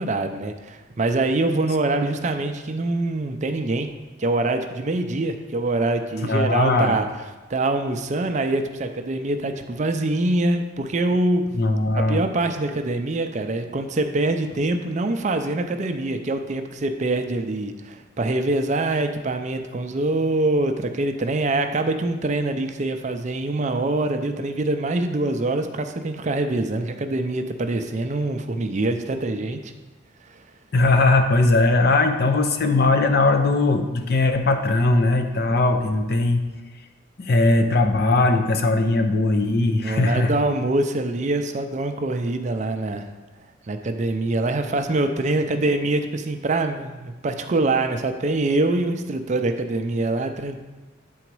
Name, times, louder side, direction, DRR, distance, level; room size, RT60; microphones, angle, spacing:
voice 1, 0.0-3.9 4.2-7.1 7.5-11.4 11.9-29.7 30.2-30.4 39.8-43.1 43.7-50.6, right 2 dB, 35° right, 7 dB, 0.4 m, -24 dB
voice 2, 6.2-7.0 11.5-12.2 30.7-36.4 37.2-40.3, left 2 dB, 50° left, 6 dB, 0.6 m, -19 dB
8.4 x 3.9 x 4.6 m, 1.2 s
head